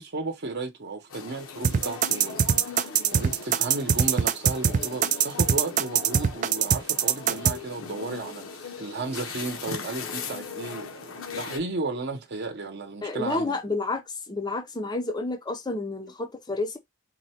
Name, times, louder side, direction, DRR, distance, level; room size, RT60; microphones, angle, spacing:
voice 1, 0.0-13.6, right 3 dB, 50° right, 0.8 m, -34 dB
sound 1, 1.1-11.6, left 5 dB, 75° left, 0.8 m, -39 dB
sound 2, 1.6-7.5, right 8 dB, 35° right, 0.3 m, -22 dB
voice 2, 13.0-16.8, left 2 dB, 20° left, 0.5 m, -30 dB
4.0 x 2.2 x 4.2 m
head